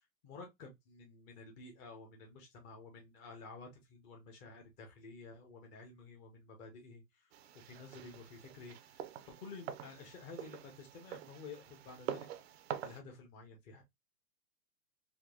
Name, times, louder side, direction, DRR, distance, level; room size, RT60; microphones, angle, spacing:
voice 1, 0.0-9.0 9.3-12.3 12.8-13.8, left 4 dB, 20° left, 0.5 m, -52 dB
sound 1, 7.3-13.0, right 10 dB, 45° right, 0.4 m, -46 dB
3.6 x 2.2 x 2.2 m
hypercardioid pair, 130°, 47 cm